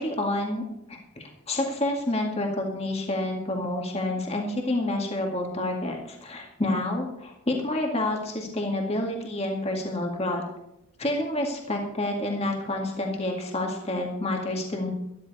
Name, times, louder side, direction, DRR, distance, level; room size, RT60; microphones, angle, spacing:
voice 1, 0.0-10.4 11.0-14.9, left 1 dB, 30° left, 1 dB, 2.1 m, -29 dB
13.5 x 13.0 x 4.2 m, 0.83 s
head